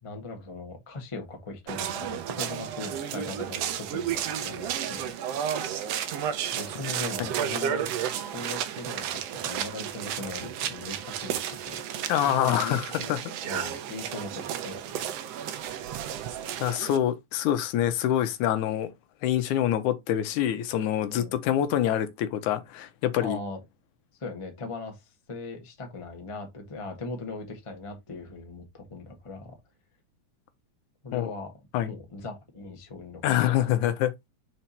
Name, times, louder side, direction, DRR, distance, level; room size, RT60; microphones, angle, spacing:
voice 1, 0.0-5.1 5.5-5.8 6.5-7.9 8.2-11.8 12.3-13.1 13.4-15.1 15.4-15.5 21.1-21.3 23.2-23.6 24.2-29.6 31.0-31.5 31.8-33.2 33.5-33.8, left 3 dB, 35° left, 0.4 m, -39 dB
sound 1, 1.7-17.0, right 9 dB, 75° right, 1.5 m, -32 dB
voice 2, 12.1-13.2 16.6-18.9 19.2-23.4 31.1-31.3 31.7-31.9 33.2-34.1, left 11 dB, 75° left, 2.1 m, -26 dB
5.0 x 4.6 x 4.2 m
omnidirectional pair, 3.7 m